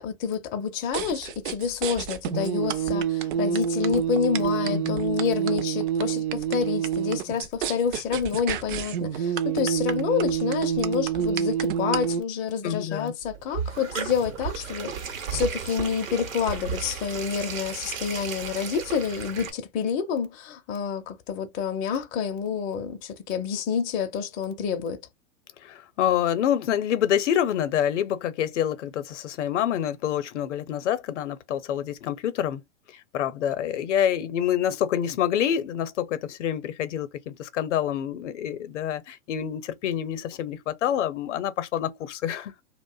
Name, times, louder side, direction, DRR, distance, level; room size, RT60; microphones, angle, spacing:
voice 1, 0.0-25.0, left 7 dB, 20° left, 0.4 m, -28 dB
sound 1, 0.9-12.2, right 8 dB, 40° right, 0.5 m, -27 dB
voice 2, 4.7-5.0 12.6-13.1 25.6-32.6 33.1-42.5, left 10 dB, 60° left, 0.7 m, -27 dB
sound 2, 13.2-19.5, right 7 dB, 75° right, 0.9 m, -34 dB
2.5 x 2.1 x 2.3 m
hypercardioid pair, 105°, 40 cm